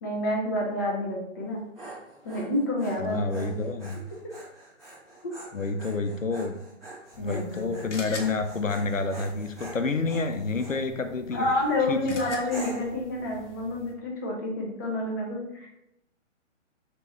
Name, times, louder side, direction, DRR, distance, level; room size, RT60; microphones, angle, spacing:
voice 1, 0.0-1.6 2.2-3.5 7.2-7.9 11.3-15.7, left 1 dB, 15° left, -3 dB, 0.5 m, -29 dB
Dog, 1.4-10.8 11.4-11.8 12.5-13.0, right 2 dB, ahead, 1.3 m, -45 dB
voice 2, 3.0-4.0 5.5-6.6 7.2-11.5 11.9-12.0, left 3 dB, 90° left, 7 dB, 0.7 m, -29 dB
sound 1, 7.1-13.9, left 2 dB, 65° left, 1.0 m, -45 dB
5.2 x 3.1 x 3.0 m, 0.82 s
figure-of-eight pair, 135°, 38 cm